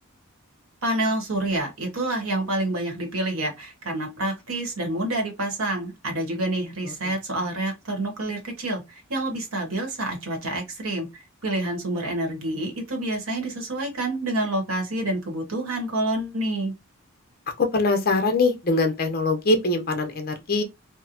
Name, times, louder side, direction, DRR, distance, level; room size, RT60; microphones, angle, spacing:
voice 1, 0.8-16.7, right 1 dB, 75° right, 1.1 m, -28 dB
voice 2, 17.6-20.6, left 3 dB, 45° left, 0.6 m, -22 dB
2.9 x 2.1 x 2.5 m
head